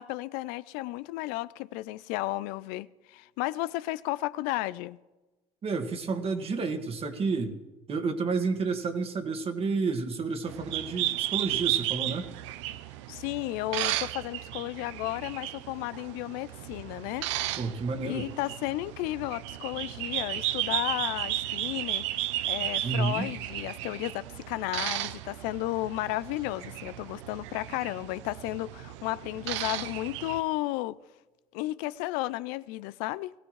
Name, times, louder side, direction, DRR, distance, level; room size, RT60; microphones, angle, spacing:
voice 1, 0.0-5.0 13.1-17.3 18.0-31.0 31.5-33.3, left 18 dB, 75° left, 0.5 m, -33 dB
voice 2, 5.6-7.6 7.9-12.3 17.6-18.3 22.8-23.3, right 4 dB, 40° right, 1.9 m, -30 dB
sound 1, 10.5-30.4, right 14 dB, 90° right, 0.6 m, -34 dB
20.5 x 15.5 x 3.2 m
supercardioid pair, 85°, 15 cm